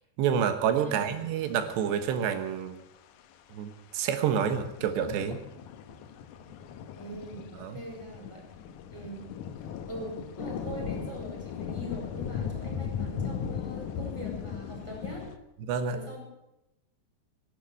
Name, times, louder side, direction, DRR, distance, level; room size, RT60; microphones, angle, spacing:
voice 1, 0.2-2.8 3.5-5.4 7.6-7.8 15.7-16.0, right 8 dB, 80° right, 9 dB, 3.4 m, -28 dB
voice 2, 0.8-1.1 7.0-8.4 8.9-9.3 9.6-15.2 15.9-16.2, right 1 dB, 5° right, -1 dB, 5.0 m, -42 dB
sound 1, 1.1-1.7 3.5-3.7 4.4-15.4, left 7 dB, 80° left, 1.7 m, -37 dB
14.5 x 11.5 x 8.2 m, 0.88 s
omnidirectional pair, 5.0 m